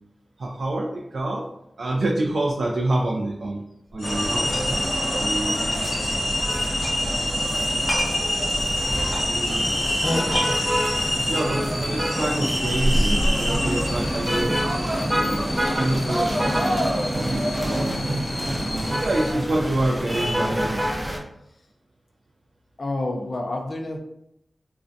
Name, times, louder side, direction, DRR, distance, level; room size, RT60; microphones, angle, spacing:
voice 1, 0.4-1.4 1.8-3.6 3.9-4.6 5.1-5.6 9.2-9.7 11.3-14.5 15.1-16.8 17.1-17.8 18.6-20.8, right 1 dB, 75° right, -2 dB, 0.3 m, -27 dB
sound 1, 3.9-4.0 4.2-4.9 5.2-5.3 5.7-7.1 7.3-9.9 10.2-11.2, equal, 10° left, 1.1 m, -32 dB
sound 2, 4.0-19.3, left 1 dB, 85° left, 0.8 m, -28 dB
sound 3, 4.0-21.2, equal, 10° right, 0.5 m, -27 dB
voice 2, 10.0-10.8 12.8-13.2 22.8-24.0, left 2 dB, 60° left, 3 dB, 0.4 m, -28 dB
2.4 x 2.1 x 2.5 m, 0.80 s
cardioid pair, 50°, 0 cm